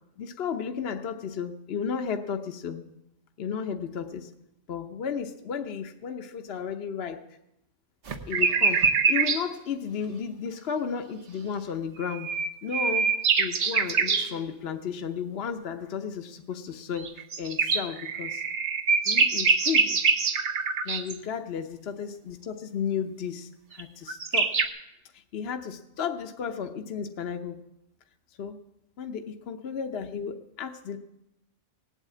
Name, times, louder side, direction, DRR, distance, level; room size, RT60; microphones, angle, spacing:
voice 1, 0.2-2.8 3.4-4.3 4.7-7.2 8.3-12.3 12.6-13.1 13.4-18.4 19.1-20.0 20.8-24.5 25.1-27.6 28.4-28.6 29.0-31.0, left 7 dB, 60° left, 5 dB, 1.0 m, -33 dB
sound 1, 8.1-9.4 12.0-14.3 17.0-21.1 23.8-23.9 24.1-24.6, right 5 dB, 65° right, 1.4 m, -24 dB
18.5 x 8.3 x 8.4 m, 0.87 s
omnidirectional pair, 1.3 m